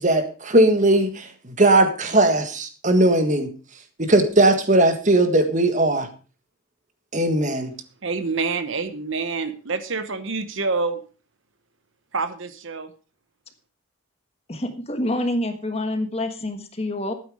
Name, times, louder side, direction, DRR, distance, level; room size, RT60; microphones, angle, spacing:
voice 1, 0.0-3.5 4.0-6.1 7.1-7.7, right 1 dB, 35° right, 7 dB, 1.7 m, -18 dB
voice 2, 8.0-11.0 12.1-12.9, right 4 dB, 65° right, 11 dB, 1.1 m, -27 dB
voice 3, 14.5-17.1, left 1 dB, 30° left, 7 dB, 1.4 m, -27 dB
12.5 x 9.2 x 4.9 m, 0.36 s
head